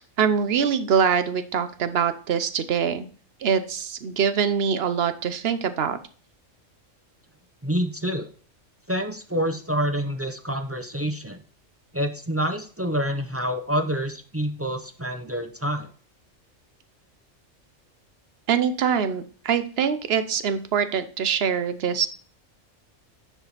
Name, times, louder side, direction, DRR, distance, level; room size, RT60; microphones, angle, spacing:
voice 1, 0.2-3.1 3.4-6.0 18.5-22.1, right 7 dB, 55° right, 12 dB, 1.0 m, -24 dB
voice 2, 7.6-8.3 8.9-11.4 11.9-15.9, equal, 15° right, 6 dB, 0.5 m, -27 dB
10.0 x 4.9 x 4.0 m, 0.42 s
omnidirectional pair, 1.3 m